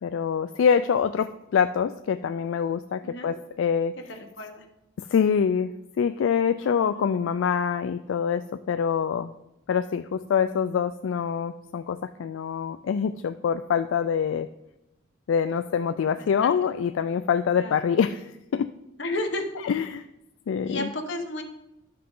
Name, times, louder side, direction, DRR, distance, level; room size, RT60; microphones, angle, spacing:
voice 1, 0.0-3.9 5.0-9.3 9.7-14.5 15.3-18.7 19.7-20.0 20.5-20.9, left 7 dB, 85° left, 11 dB, 0.3 m, -25 dB
voice 2, 3.0-3.3 4.4-4.6 6.6-7.1 16.2-16.5 17.6-17.8 19.0-19.5 20.6-21.4, left 2 dB, 65° left, 4 dB, 1.2 m, -33 dB
12.0 x 5.8 x 3.8 m, 0.91 s
head